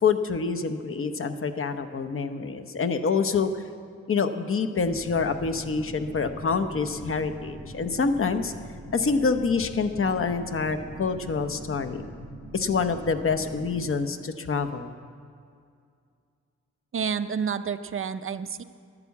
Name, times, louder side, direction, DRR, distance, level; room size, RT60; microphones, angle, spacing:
voice 1, 0.0-3.5 4.1-8.5 8.9-12.1 12.5-14.9, left 5 dB, 45° left, 8 dB, 0.9 m, -26 dB
sound 1, 4.8-13.8, equal, 15° right, 4.6 m, -43 dB
voice 2, 16.9-18.6, right 6 dB, 45° right, 11 dB, 0.5 m, -29 dB
12.0 x 11.5 x 8.3 m, 2.3 s
wide cardioid pair, 135°, 30 cm